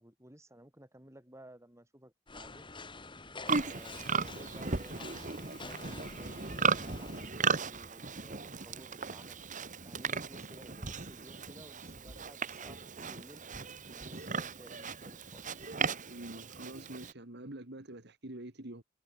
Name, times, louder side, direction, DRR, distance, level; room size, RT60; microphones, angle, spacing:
voice 1, 0.0-2.7 3.6-9.4 9.8-13.4 13.9-15.7, right 1 dB, 15° right, 5.4 m, -56 dB
sound 1, 2.3-7.3, left 3 dB, 25° left, 3.4 m, -48 dB
Livestock farm animals working animals, 3.5-17.1, right 5 dB, 40° right, 2.0 m, -36 dB
voice 2, 16.1-18.8, right 1 dB, 55° right, 2.3 m, -46 dB
head